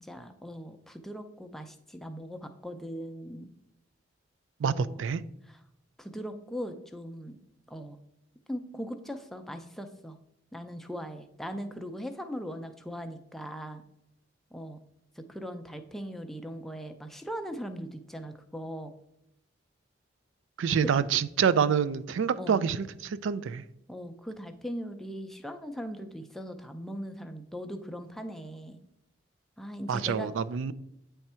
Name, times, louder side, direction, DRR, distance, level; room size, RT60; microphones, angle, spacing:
voice 1, 0.0-3.5 4.6-5.0 5.4-5.6 6.0-7.4 7.7-8.0 8.5-10.2 10.5-13.8 14.5-14.8 15.2-18.9 22.4-22.6 23.9-28.8 29.6-30.3, equal, ahead, 0.4 m, -39 dB
voice 2, 4.6-5.2 20.6-23.6 29.9-30.7, right 7 dB, 85° right, 0.3 m, -27 dB
8.9 x 3.5 x 4.3 m
head